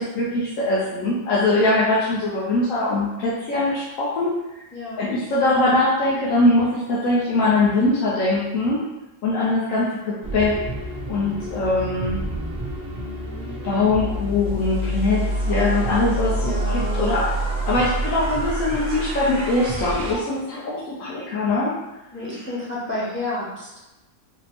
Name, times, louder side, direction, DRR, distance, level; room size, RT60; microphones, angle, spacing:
voice 1, 0.0-4.3 5.0-8.8 9.2-10.5 11.1-12.2 13.6-17.3 17.7-21.7, left 2 dB, 70° left, -7 dB, 1.0 m, -22 dB
voice 2, 4.7-5.0 15.0-15.9 16.4-17.1 22.1-23.7, left 1 dB, 15° left, -7 dB, 0.4 m, -31 dB
sound 1, 10.2-20.2, right 1 dB, 45° right, 0.7 m, -27 dB
4.1 x 2.0 x 2.9 m, 1.0 s
omnidirectional pair, 1.5 m